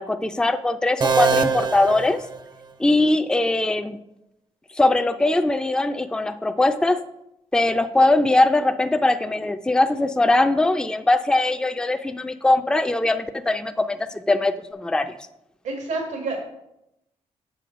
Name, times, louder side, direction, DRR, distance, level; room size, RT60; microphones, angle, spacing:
voice 1, 0.0-2.2 2.8-4.0 4.8-7.0 7.5-15.1, left 2 dB, 5° left, 8 dB, 0.5 m, -21 dB
sound 1, 1.0-2.9, right 5 dB, 35° right, 0.7 m, -24 dB
voice 2, 15.6-16.4, right 3 dB, 85° right, 2 dB, 1.6 m, -28 dB
7.7 x 5.9 x 5.0 m, 0.85 s
cardioid pair, 75°, 12 cm